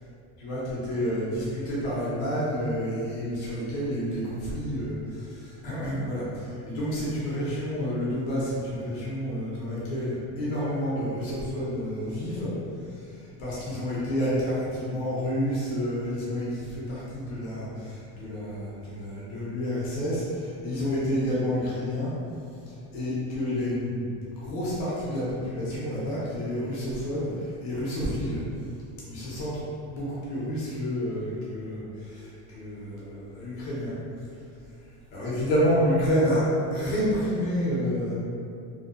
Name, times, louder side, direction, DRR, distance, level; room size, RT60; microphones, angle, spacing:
voice 1, 0.4-12.5 12.8-22.1 22.7-24.1 24.4-28.4 29.1-33.9 35.1-38.1, equal, 85° left, -8 dB, 0.9 m, -29 dB
2.4 x 2.4 x 2.2 m, 2.4 s
supercardioid pair, 100°, 38 cm